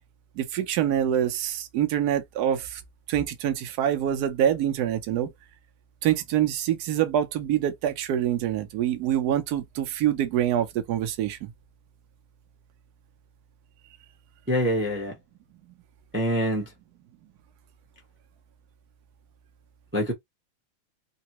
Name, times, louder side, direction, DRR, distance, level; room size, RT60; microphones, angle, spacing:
voice 1, 0.4-2.8 3.1-5.3 6.0-11.5, right 10 dB, 65° right, 1.0 m, -25 dB
voice 2, 14.5-15.1 16.1-16.7 19.9-20.1, equal, 15° right, 0.4 m, -25 dB
3.9 x 2.1 x 2.9 m
omnidirectional pair, 2.2 m